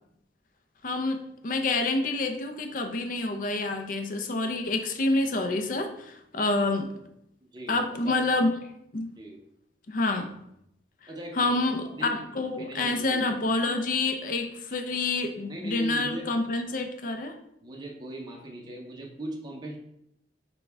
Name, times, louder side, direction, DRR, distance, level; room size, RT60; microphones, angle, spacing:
voice 1, 0.8-6.9 7.7-8.5 8.9-9.1 9.9-10.3 11.4-17.3, left 2 dB, 50° left, 6 dB, 0.5 m, -28 dB
voice 2, 7.4-7.8 8.0-8.1 9.2-9.4 11.1-12.2 12.6-13.2 15.5-16.3 17.6-19.8, right 1 dB, 25° right, -1 dB, 0.7 m, -39 dB
6.4 x 2.2 x 3.3 m, 0.77 s
head